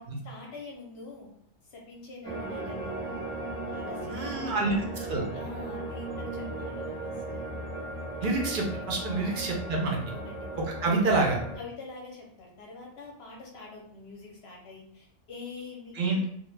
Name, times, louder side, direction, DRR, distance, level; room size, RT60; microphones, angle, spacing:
voice 1, 0.2-1.3 1.6-3.1 3.7-4.7 5.3-7.5 9.0-9.4 10.1-10.5 10.7-11.0 11.6-16.2, left 3 dB, 65° left, -1 dB, 0.7 m, -45 dB
sound 1, 2.2-11.6, right 1 dB, 10° right, 0.7 m, -37 dB
voice 2, 4.1-5.2 8.2-10.0 10.6-11.4 15.9-16.3, right 3 dB, 60° right, -1 dB, 0.5 m, -27 dB
2.3 x 2.1 x 3.1 m, 0.67 s
omnidirectional pair, 1.4 m